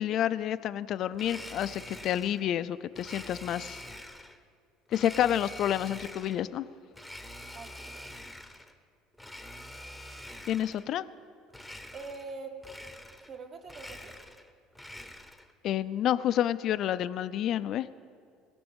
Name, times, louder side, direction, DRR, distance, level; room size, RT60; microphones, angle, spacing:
voice 1, 0.0-3.8 4.9-6.7 10.5-11.0 15.6-17.9, left 11 dB, 55° left, 14 dB, 0.5 m, -29 dB
Domestic sounds home sounds, 1.1-2.5 3.0-4.4 4.9-6.5 6.9-8.7 9.1-10.9 11.5-12.3 12.6-13.4 13.6-15.5, left 1 dB, ahead, 1.0 m, -46 dB
voice 2, 7.5-8.0 11.9-12.6 13.2-14.2, right 4 dB, 40° right, 4 dB, 1.7 m, -43 dB
18.0 x 6.1 x 9.0 m, 2.2 s
supercardioid pair, 100°, 0 cm